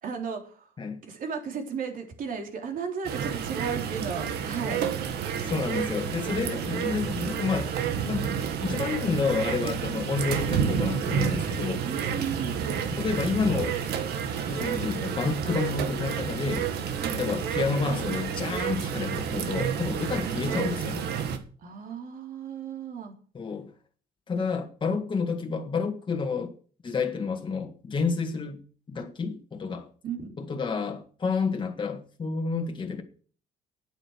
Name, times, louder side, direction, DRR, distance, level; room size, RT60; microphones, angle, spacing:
voice 1, 0.0-0.7 1.0-4.8 11.8-12.7 17.0-17.2 20.2-20.4 21.6-23.1 30.0-30.4, right 6 dB, 55° right, 3.3 m, -35 dB
sound 1, 3.0-21.4, right 8 dB, 75° right, 1.8 m, -30 dB
voice 2, 5.5-7.7 8.0-11.8 13.0-13.8 14.5-16.6 17.1-21.0 23.3-23.7 24.3-26.5 26.8-28.6 28.9-29.8 30.4-33.0, left 4 dB, 30° left, 1.7 m, -29 dB
9.1 x 9.0 x 7.9 m
cardioid pair, 110°, 17 cm